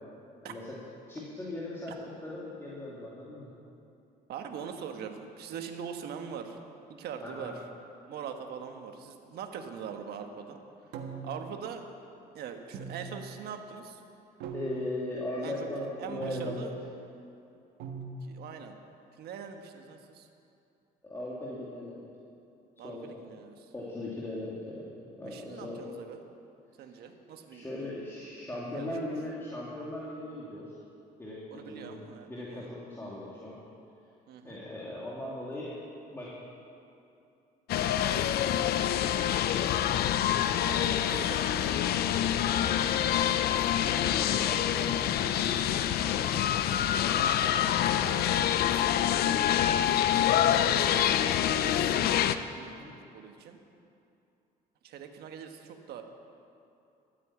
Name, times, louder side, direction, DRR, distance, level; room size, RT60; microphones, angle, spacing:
voice 1, 1.1-3.5 7.2-7.5 14.5-16.7 21.0-22.1 22.8-23.2 23.7-25.8 27.5-30.8 31.2-32.0 32.3-33.6 34.4-35.8 36.1-36.3 42.5-43.5 43.7-45.2 52.6-52.9, left 1 dB, 15° left, -7 dB, 2.5 m, -39 dB
voice 2, 4.3-6.6 6.9-7.6 8.1-10.9 11.2-11.8 12.3-14.0 15.4-16.7 18.2-18.7 19.1-20.3 22.8-23.7 25.2-26.2 26.8-27.9 28.6-29.0 31.5-32.7 34.3-34.6 40.6-41.8 46.3-46.8 47.9-48.4 50.2-51.0 51.5-52.2 52.5-53.6 54.8-56.0, right 7 dB, 70° right, 5 dB, 1.3 m, -42 dB
sound 1, 10.9-11.5 12.7-13.4 14.4-15.0 16.2-16.7 17.8-18.1, right 5 dB, 90° right, 1.4 m, -40 dB
sound 2, 37.7-52.4, left 10 dB, 65° left, 0.6 m, -26 dB
13.0 x 8.9 x 8.6 m, 2.6 s
cardioid pair, 110°, 17 cm